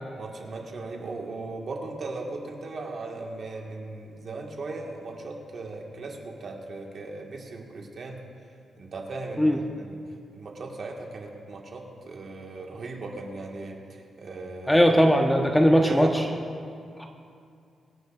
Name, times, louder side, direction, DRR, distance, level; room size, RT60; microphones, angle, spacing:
voice 1, 0.2-8.2 8.8-10.0 10.3-14.8 15.8-16.3, right 3 dB, 50° right, 0 dB, 1.7 m, -37 dB
voice 2, 14.7-16.1 17.0-17.1, equal, 5° left, 3 dB, 0.6 m, -19 dB
24.5 x 10.0 x 2.5 m, 2.4 s
cardioid pair, 125°, 0 cm